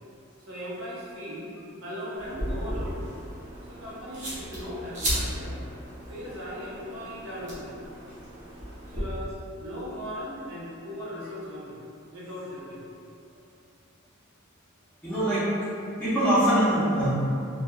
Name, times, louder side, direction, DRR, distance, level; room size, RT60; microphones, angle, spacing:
voice 1, 0.5-1.5 1.8-3.1 3.7-5.6 6.1-7.7 8.9-9.3 9.6-11.8 12.1-12.8, equal, 75° right, -7 dB, 0.7 m, -38 dB
sound 1, 2.2-9.0, equal, 35° right, 0.6 m, -35 dB
voice 2, 15.0-15.5 16.0-17.1, right 1 dB, 5° left, -13 dB, 0.5 m, -23 dB
2.2 x 2.2 x 3.0 m, 2.6 s
head